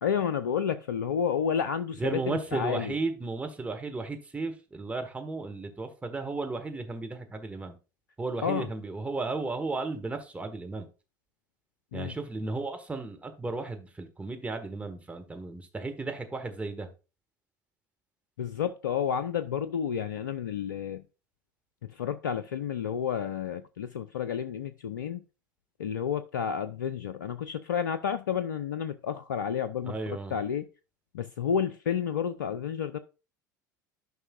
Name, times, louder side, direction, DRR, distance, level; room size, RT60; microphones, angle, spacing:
voice 1, 0.0-2.9 8.4-8.7 11.9-12.2 18.4-21.0 21.9-25.2 25.8-30.7 31.1-33.0, left 8 dB, 75° left, 0.4 m, -31 dB
voice 2, 2.0-7.8 8.2-10.9 11.9-16.9 29.9-30.3, right 3 dB, 15° right, 1.6 m, -34 dB
12.5 x 5.4 x 2.4 m
figure-of-eight pair, 70°, 10 cm